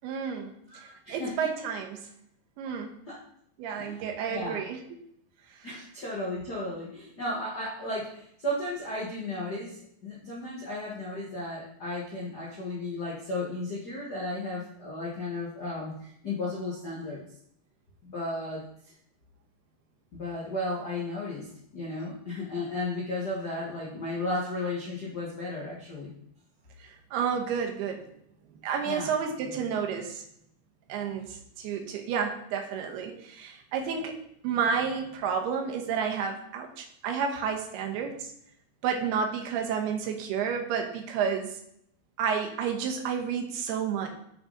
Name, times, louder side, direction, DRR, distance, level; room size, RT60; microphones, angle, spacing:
voice 1, 0.0-0.5 1.1-2.0 2.6-3.0 3.6-4.8 27.1-28.1 28.6-30.2 30.9-31.3 31.6-34.2 34.4-38.1 38.8-41.5 42.2-44.1, right 6 dB, 85° right, 2 dB, 3.2 m, -30 dB
voice 2, 0.7-1.5 3.1-3.2 3.8-4.6 5.6-17.2 18.0-18.9 20.1-26.1 28.8-29.1, left 2 dB, 85° left, -5 dB, 0.8 m, -34 dB
9.4 x 6.4 x 4.0 m, 0.72 s
omnidirectional pair, 4.4 m